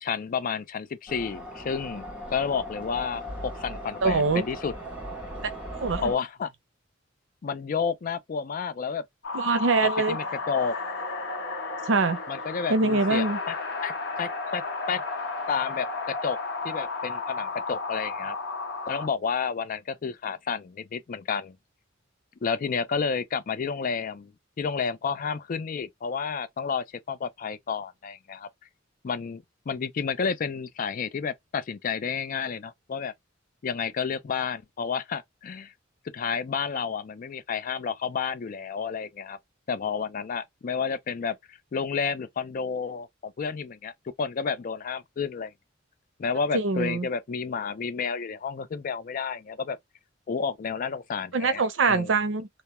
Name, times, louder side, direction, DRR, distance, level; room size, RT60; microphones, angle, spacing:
voice 1, 0.0-2.0 2.3-4.7 6.0-6.5 7.4-9.0 9.8-10.8 12.3-13.5 13.8-14.6 14.9-15.0 15.5-16.4 16.6-18.4 18.9-21.6 22.4-24.3 24.6-28.5 29.0-33.1 33.6-35.7 36.1-39.4 39.7-43.9 44.2-45.5 46.2-49.8 50.3-51.6 51.9-52.1, left 6 dB, 45° left, 0.4 m, -31 dB
sound 1, 1.1-6.2, equal, 5° right, 0.9 m, -38 dB
voice 2, 4.0-4.4 5.8-6.1 9.3-10.2 11.9-12.2 12.7-13.4 46.5-47.1 51.3-52.5, right 3 dB, 80° right, 0.6 m, -23 dB
sound 2, 9.2-19.1, left 3 dB, 65° left, 0.9 m, -33 dB
2.2 x 2.1 x 2.8 m
head